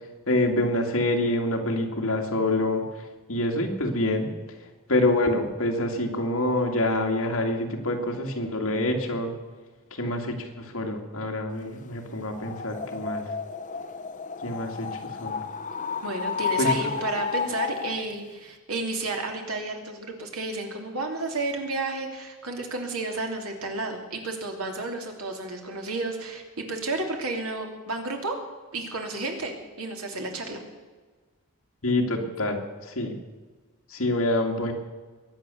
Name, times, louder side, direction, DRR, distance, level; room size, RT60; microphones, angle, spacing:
voice 1, 0.3-2.8 3.3-4.3 4.9-9.3 10.0-13.2 14.4-14.9 15.2-15.3 16.6-16.9 31.8-32.6 33.0-33.2 33.9-34.7, left 1 dB, 65° left, 2 dB, 2.5 m, -26 dB
sound 1, 12.3-18.1, left 6 dB, 35° left, 0.7 m, -31 dB
voice 2, 16.0-28.4 28.7-30.6, right 2 dB, 70° right, 3 dB, 3.0 m, -32 dB
22.5 x 9.0 x 7.1 m, 1.3 s
head